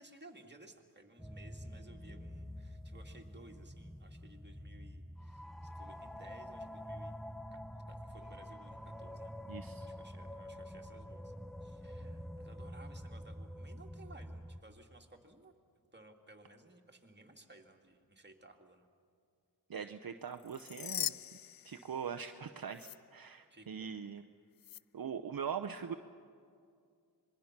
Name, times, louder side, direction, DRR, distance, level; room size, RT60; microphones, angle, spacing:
voice 1, 0.0-7.1 7.5-7.6 7.9-9.4 9.8-11.3 11.6-15.5 15.9-18.9 23.5-24.0, right 2 dB, 25° right, 2 dB, 2.2 m, -58 dB
sound 1, 1.2-14.6, equal, ahead, 0.8 m, -47 dB
voice 2, 9.5-9.9 19.7-21.1 21.6-24.3 24.9-25.9, right 7 dB, 60° right, 6 dB, 0.8 m, -41 dB
sound 2, 20.4-22.4 22.7-23.0 24.6-24.8, left 10 dB, 60° left, 0.5 m, -41 dB
26.0 x 21.5 x 6.0 m, 2.3 s
wide cardioid pair, 60°, 40 cm